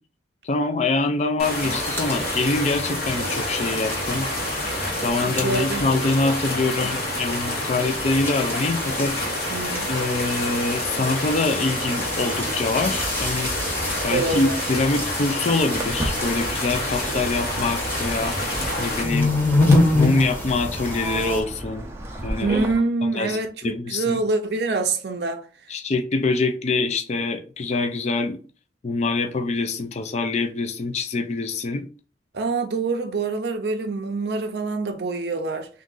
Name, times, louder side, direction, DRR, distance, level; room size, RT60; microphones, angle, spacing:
voice 1, 0.4-4.3 5.0-9.1 9.9-13.5 14.0-18.3 18.8-19.3 19.9-21.9 22.2-22.6 23.0-24.2 25.7-28.4 28.8-31.8, left 3 dB, 40° left, 0.4 m, -25 dB
sound 1, 1.4-19.0, left 1 dB, 60° left, 1.1 m, -28 dB
sound 2, 1.5-21.4, left 2 dB, 10° left, 1.0 m, -28 dB
voice 2, 5.3-5.8 9.5-9.9 14.1-14.6 22.4-25.4 32.3-35.7, right 3 dB, 65° right, 0.5 m, -25 dB
Walk footsteps, 15.8-22.7, right 1 dB, 15° right, 0.5 m, -33 dB
3.7 x 2.5 x 3.8 m
head